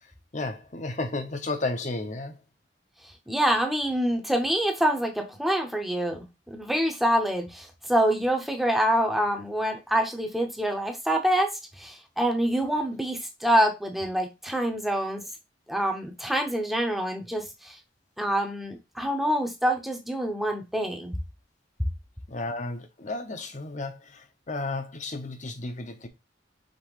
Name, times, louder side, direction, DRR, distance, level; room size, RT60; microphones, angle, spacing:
voice 1, 0.0-2.4 22.3-26.1, left 2 dB, 40° left, 0.8 m, -33 dB
voice 2, 3.3-6.2 6.5-15.2 15.7-17.7 18.2-21.2, right 1 dB, ahead, 0.8 m, -26 dB
5.3 x 3.3 x 3.0 m
head